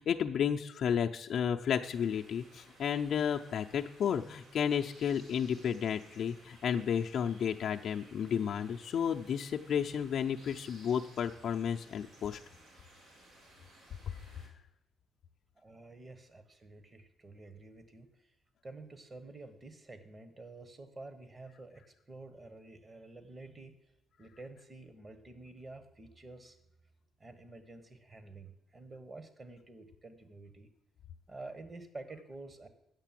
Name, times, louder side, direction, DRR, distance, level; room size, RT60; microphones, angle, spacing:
voice 1, 0.0-12.4 14.1-14.2, left 8 dB, 65° left, 2 dB, 0.5 m, -32 dB
sound 1, 1.8-14.5, right 1 dB, 85° right, 3.6 m, -59 dB
voice 2, 15.6-18.1 18.6-23.7 24.2-26.6 27.2-30.7 31.3-32.7, right 2 dB, 30° right, 10 dB, 1.4 m, -50 dB
9.0 x 6.6 x 7.6 m, 0.87 s
cardioid pair, 90°, 0 cm